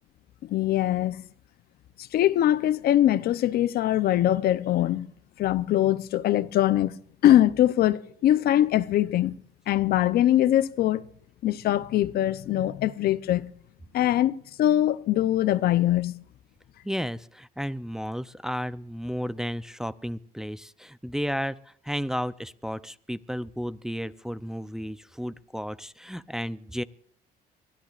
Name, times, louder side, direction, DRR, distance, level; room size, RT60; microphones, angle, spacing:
voice 1, 0.4-1.2 2.0-5.1 5.4-7.0 7.2-9.3 9.7-11.0 11.4-13.5 13.9-16.2, left 12 dB, 65° left, 0.7 m, -22 dB
voice 2, 16.8-26.8, equal, 5° right, 0.5 m, -33 dB
23.5 x 16.0 x 2.5 m
cardioid pair, 110°, 17 cm